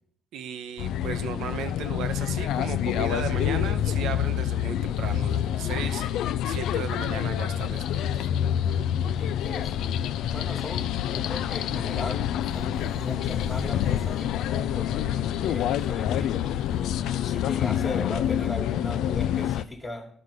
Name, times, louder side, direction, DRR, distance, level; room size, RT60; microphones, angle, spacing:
voice 1, 0.3-6.1 6.4-8.3, right 8 dB, 85° right, 10 dB, 0.7 m, -35 dB
sound 1, 0.8-19.6, left 10 dB, 85° left, 0.3 m, -27 dB
voice 2, 9.2-16.5 17.2-20.1, left 2 dB, 25° left, 1 dB, 1.4 m, -38 dB
sound 2, 12.5-18.4, right 4 dB, 60° right, 1.2 m, -51 dB
11.0 x 3.9 x 6.4 m, 0.66 s
cardioid pair, 90°, 0 cm